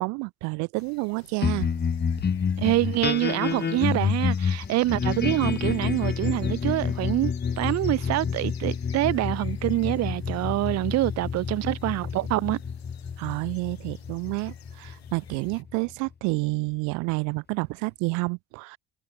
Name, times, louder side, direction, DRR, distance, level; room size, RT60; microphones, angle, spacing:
voice 1, 0.0-1.7 13.2-18.8, right 30 dB, 75° right, 1.2 m, -29 dB
sound 1, 0.8-15.6, left 10 dB, 90° left, 3.3 m, -49 dB
sound 2, 1.4-16.1, left 6 dB, 35° left, 1.5 m, -29 dB
voice 2, 2.6-12.6, right 17 dB, 60° right, 0.7 m, -26 dB
hypercardioid pair, 50°, 30 cm